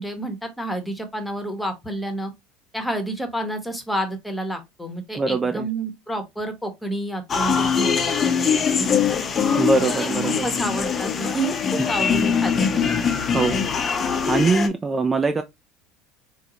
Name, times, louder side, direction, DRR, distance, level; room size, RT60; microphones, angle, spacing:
voice 1, 0.0-2.3 2.7-9.4 10.0-13.2 13.4-13.7, right 1 dB, 5° left, 0.8 m, -30 dB
voice 2, 5.2-5.7 9.6-10.4 11.8-11.9 13.3-13.6 14.3-15.4, right 3 dB, 20° right, 0.3 m, -22 dB
sound 1, 7.3-14.7, left 6 dB, 35° left, 0.5 m, -22 dB
3.7 x 2.0 x 2.8 m
supercardioid pair, 90°, 0 cm